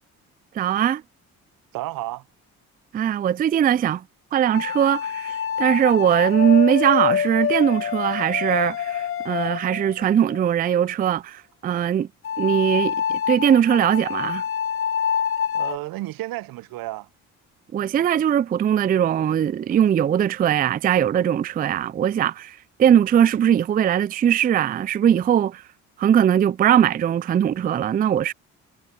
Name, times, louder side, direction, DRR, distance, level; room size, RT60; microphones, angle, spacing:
voice 1, 0.5-1.0 2.9-4.0 4.3-12.1 12.4-14.4 17.7-25.6 26.0-28.3, right 9 dB, 25° right, 0.3 m, -20 dB
voice 2, 1.7-2.2 15.5-17.1, right 18 dB, 70° right, 0.7 m, -32 dB
sound 1, 4.5-10.4 12.2-15.8, left 8 dB, 35° left, 0.7 m, -26 dB
supercardioid pair, 60°, 36 cm